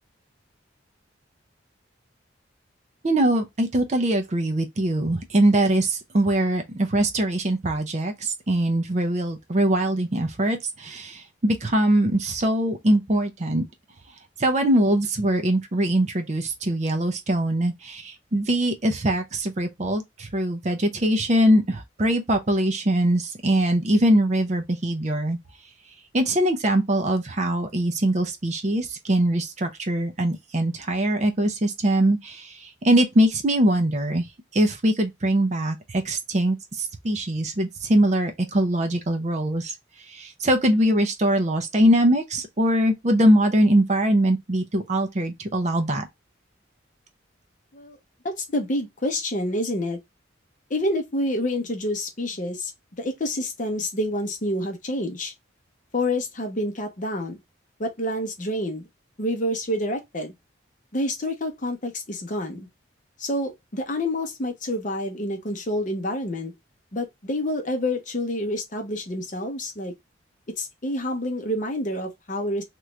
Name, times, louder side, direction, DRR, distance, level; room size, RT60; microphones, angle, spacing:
voice 1, 3.0-13.6 14.4-25.4 26.1-34.2 34.5-39.7 40.1-46.1, right 1 dB, 35° right, 0.5 m, -22 dB
voice 2, 48.4-50.0 50.7-52.7 53.0-55.3 55.9-57.4 57.8-58.9 59.2-60.3 60.9-62.7 63.2-66.5 66.9-69.9 70.6-72.6, left 1 dB, 40° left, 0.7 m, -28 dB
3.0 x 2.4 x 3.2 m
head